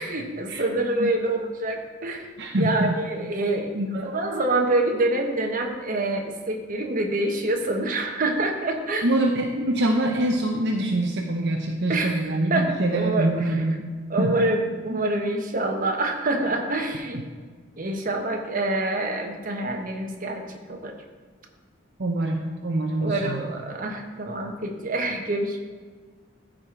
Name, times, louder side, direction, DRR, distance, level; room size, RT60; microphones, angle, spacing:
voice 1, 0.0-2.3 2.6-3.7 4.0-9.1 11.9-12.2 12.5-13.3 14.1-17.2 17.8-20.4 20.7-20.9 23.0-25.6, right 2 dB, 45° right, 3 dB, 1.1 m, -26 dB
voice 2, 2.4-2.9 3.7-4.0 9.0-13.9 14.2-14.5 14.9-15.0 22.0-23.5, right 1 dB, 60° right, 1 dB, 0.8 m, -25 dB
14.0 x 5.0 x 3.7 m, 1.5 s
head